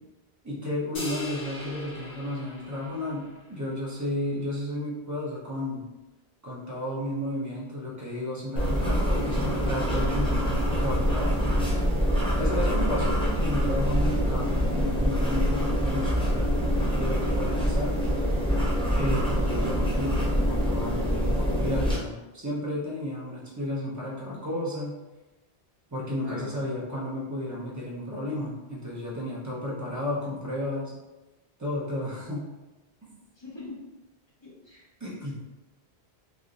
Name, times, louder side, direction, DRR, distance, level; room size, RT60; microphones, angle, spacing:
voice 1, 0.4-5.8 6.4-11.3 12.4-16.5 16.9-18.0 18.9-25.0 25.9-31.0 31.6-32.5 35.0-35.4, left 1 dB, 20° right, -6 dB, 0.7 m, -32 dB
sound 1, 0.9-3.5, left 1 dB, 70° left, 1.4 m, -39 dB
sound 2, 8.6-22.0, equal, 5° left, 0.4 m, -25 dB
voice 2, 33.4-33.7 34.4-34.8, left 2 dB, 25° left, -8 dB, 1.0 m, -41 dB
3.1 x 2.6 x 2.5 m, 1.1 s
omnidirectional pair, 1.1 m